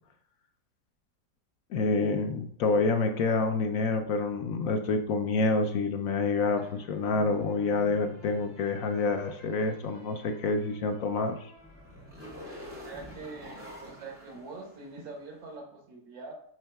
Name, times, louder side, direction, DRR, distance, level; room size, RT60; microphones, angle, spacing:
voice 1, 1.7-11.5, left 3 dB, 75° left, 5 dB, 0.8 m, -28 dB
sound 1, 6.6-15.3, equal, 5° right, 2.4 m, -49 dB
voice 2, 12.6-16.3, right 3 dB, 80° right, 2 dB, 1.9 m, -44 dB
11.0 x 3.8 x 2.3 m, 0.67 s
omnidirectional pair, 2.0 m